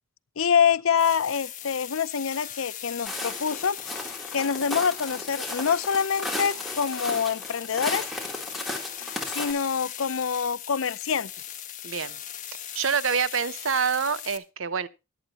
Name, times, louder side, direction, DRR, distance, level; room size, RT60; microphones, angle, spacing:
voice 1, 0.4-3.8 4.3-8.1 9.3-11.3, left 7 dB, 80° left, 0.6 m, -26 dB
sound 1, 1.0-14.4, left 11 dB, 40° left, 1.4 m, -39 dB
Walk footsteps, 3.1-9.5, left 1 dB, ahead, 3.5 m, -35 dB
voice 2, 11.8-12.2 12.7-14.9, right 6 dB, 70° right, 0.8 m, -26 dB
23.0 x 8.6 x 3.0 m
head